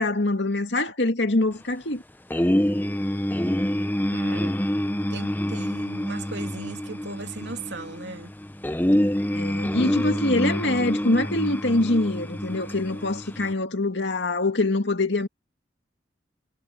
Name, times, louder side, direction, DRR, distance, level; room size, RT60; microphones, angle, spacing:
voice 1, 0.0-2.0 9.3-15.3, left 2 dB, 70° left, 2.2 m, -24 dB
sound 1, 2.3-13.5, equal, 10° left, 0.7 m, -27 dB
voice 2, 4.1-4.6 5.1-8.3, right 3 dB, 70° right, 3.0 m, -37 dB
head